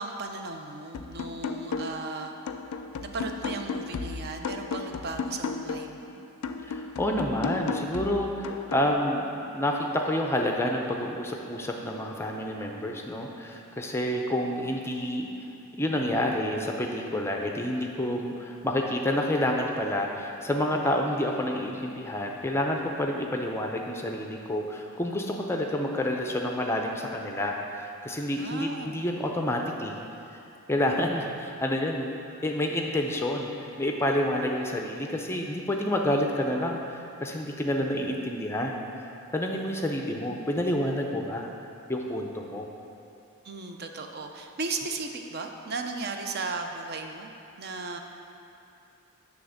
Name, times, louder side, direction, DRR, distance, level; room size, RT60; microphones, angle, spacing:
voice 1, 0.0-2.3 3.1-6.2 28.3-29.0 42.7-42.8 43.4-48.0, right 3 dB, 45° right, 4 dB, 0.5 m, -36 dB
sound 1, 0.9-2.1 2.5-6.0 6.4-8.9, left 4 dB, 85° left, 0.4 m, -34 dB
voice 2, 6.6-15.3 15.8-30.0 30.7-32.1 32.4-41.5 41.9-42.7, left 1 dB, 10° left, 1 dB, 0.4 m, -29 dB
9.3 x 3.4 x 6.4 m, 2.7 s
head